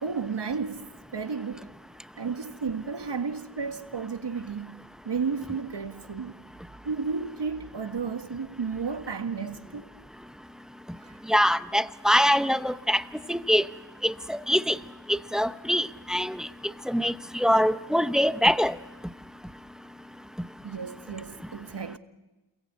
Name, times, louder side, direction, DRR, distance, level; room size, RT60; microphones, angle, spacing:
voice 1, 0.0-1.7 2.2-6.5 6.8-9.9 11.0-11.2 20.6-22.0, right 5 dB, 60° right, 1.8 m, -33 dB
voice 2, 11.3-13.0 13.3-13.6 14.0-14.8 15.1-16.5 16.9-18.8, equal, ahead, 0.8 m, -24 dB
28.0 x 21.5 x 8.4 m
cardioid pair, 60°, 46 cm